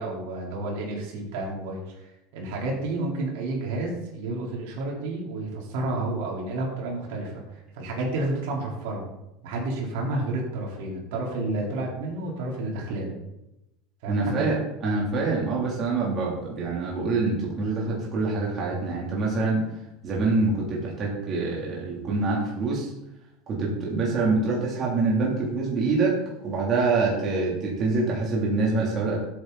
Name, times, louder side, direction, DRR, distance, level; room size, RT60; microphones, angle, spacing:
voice 1, 0.0-9.0 9.4-13.1 14.0-14.5, right 2 dB, 70° right, -2 dB, 4.1 m, -30 dB
voice 2, 14.1-19.7 20.0-22.9 23.5-29.2, right 3 dB, 30° right, -4 dB, 3.1 m, -25 dB
13.0 x 8.3 x 4.1 m, 0.89 s
supercardioid pair, 145°, 0 cm